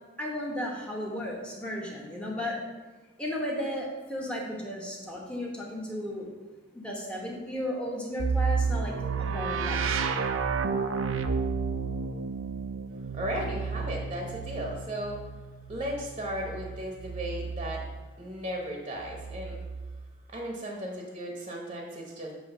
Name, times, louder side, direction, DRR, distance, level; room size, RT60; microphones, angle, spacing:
voice 1, 0.2-2.6 3.2-6.3 6.7-10.2, equal, 5° left, -3 dB, 1.1 m, -34 dB
sound 1, 8.2-18.0 19.0-20.1, right 5 dB, 85° right, 0.5 m, -31 dB
voice 2, 13.1-15.2 15.7-17.9 18.2-19.6 20.3-22.3, equal, 30° right, 0 dB, 0.9 m, -35 dB
7.7 x 3.1 x 5.4 m, 1.3 s
head